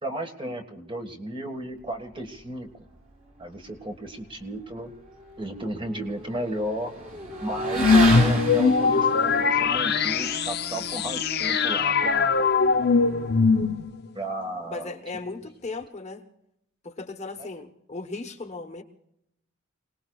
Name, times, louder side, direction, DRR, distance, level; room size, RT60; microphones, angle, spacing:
voice 1, 0.0-2.7 3.4-4.9 5.4-6.9 7.4-12.3 14.1-15.0 17.4-17.5, right 1 dB, 25° right, 4 dB, 1.7 m, -34 dB
Motorcycle / Accelerating revving vroom, 4.9-13.7, right 2 dB, 40° right, 5.7 m, -33 dB
The Hitchhiker, 7.8-14.1, left 5 dB, 50° left, 0.7 m, -21 dB
voice 2, 14.7-16.3 16.8-18.8, left 3 dB, 35° left, 5 dB, 1.1 m, -36 dB
28.5 x 19.0 x 2.4 m, 0.80 s
head